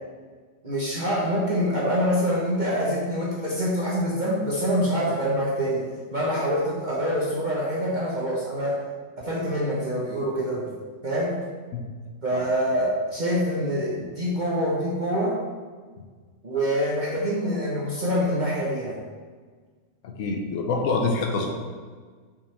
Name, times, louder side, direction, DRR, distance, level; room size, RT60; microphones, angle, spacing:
voice 1, 0.6-5.8 6.1-8.8 9.2-10.7 11.0-11.4 12.2-15.4 16.4-19.0, equal, 40° right, -6 dB, 1.2 m, -25 dB
voice 2, 20.0-21.5, left 3 dB, 85° left, 2 dB, 1.1 m, -26 dB
6.8 x 5.5 x 3.4 m, 1.5 s
omnidirectional pair, 1.3 m